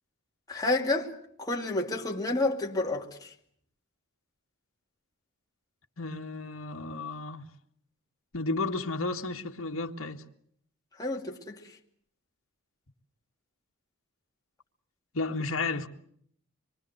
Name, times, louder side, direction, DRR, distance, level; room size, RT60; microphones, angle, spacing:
voice 1, 0.5-3.3 11.0-11.6, left 2 dB, 15° left, 2.6 m, -30 dB
voice 2, 6.0-7.5 8.3-10.2 15.1-15.9, left 3 dB, 65° left, 1.9 m, -32 dB
26.0 x 23.5 x 8.0 m
head